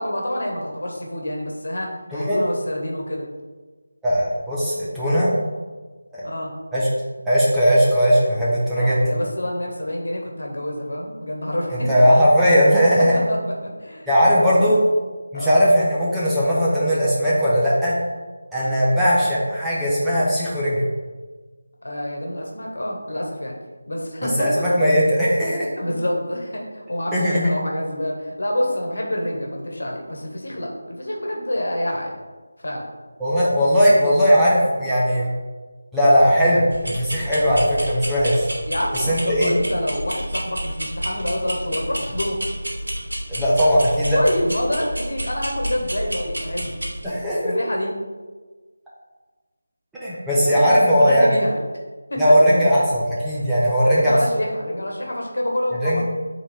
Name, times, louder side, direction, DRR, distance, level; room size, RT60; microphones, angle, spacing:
voice 1, 0.0-3.3 6.2-6.5 8.8-11.9 12.9-14.7 15.3-15.6 21.8-23.5 23.9-24.5 25.8-32.2 32.6-32.9 38.7-42.4 44.1-46.8 47.4-48.0 50.4-51.6 52.1-52.3 52.8-52.9 53.3-53.4 53.8-56.0, left 1 dB, 65° left, 0 dB, 1.4 m, -27 dB
voice 2, 4.0-5.3 6.1-6.2 6.7-6.9 7.2-9.1 11.7-13.1 14.1-14.8 15.3-17.9 18.5-20.8 24.2-25.7 27.1-27.5 33.2-35.3 35.9-38.5 38.9-39.5 43.3-44.2 47.0-47.5 49.9-51.3 52.2-54.2 55.7-56.0, equal, 5° right, -11 dB, 0.9 m, -18 dB
sound 1, 36.7-47.0, equal, 75° right, 1.7 m, -30 dB
8.4 x 3.7 x 3.4 m, 1.3 s
figure-of-eight pair, 165°, 0 cm